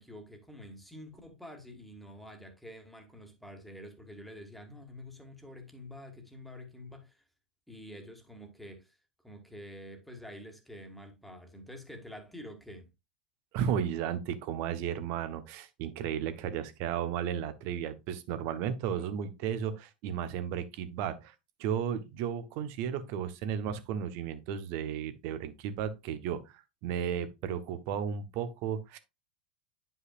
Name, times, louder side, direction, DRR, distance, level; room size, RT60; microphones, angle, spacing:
voice 1, 0.0-7.2 7.7-9.0 9.2-12.9, left 1 dB, ahead, 1.7 m, -48 dB
voice 2, 13.5-21.3 21.6-29.0, right 8 dB, 50° right, 0.9 m, -34 dB
9.5 x 5.6 x 2.4 m
figure-of-eight pair, 90°, 5 cm